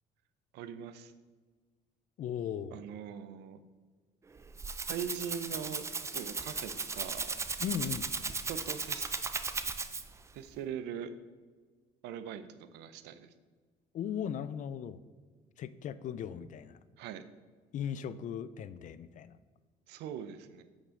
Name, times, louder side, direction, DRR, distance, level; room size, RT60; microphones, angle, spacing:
voice 1, 0.5-1.1 2.7-3.6 4.9-7.3 8.5-9.3 10.3-11.1 12.0-13.3 17.0-17.2 19.9-20.6, right 8 dB, 90° right, 11 dB, 0.5 m, -41 dB
voice 2, 2.2-2.8 7.6-8.1 13.9-15.0 15.6-16.8 17.7-19.3, left 8 dB, 50° left, 15 dB, 0.4 m, -37 dB
Rattle (instrument), 4.3-10.3, right 4 dB, 15° right, 0.4 m, -36 dB
8.2 x 5.3 x 3.7 m, 1.4 s
cardioid pair, 110°, 17 cm